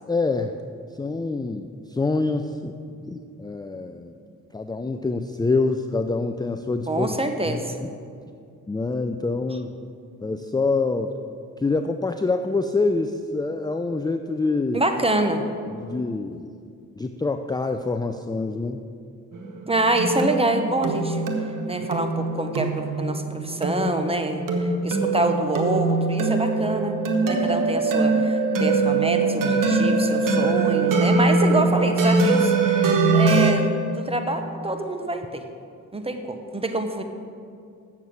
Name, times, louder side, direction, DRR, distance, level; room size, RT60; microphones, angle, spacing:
voice 1, 0.1-0.5 1.0-2.7 3.0-4.1 4.5-7.2 7.5-7.9 8.7-9.7 10.2-11.1 11.6-14.8 15.7-16.5 17.0-18.8, left 3 dB, 15° left, 6 dB, 0.4 m, -26 dB
voice 2, 6.9-7.8 14.7-15.4 19.7-21.2 21.7-27.0 27.3-35.4 35.9-37.0, right 2 dB, 20° right, 6 dB, 1.1 m, -26 dB
sound 1, 19.3-33.5, right 3 dB, 75° right, 1.2 m, -22 dB
7.4 x 7.2 x 8.0 m, 2.4 s
cardioid pair, 65°, 32 cm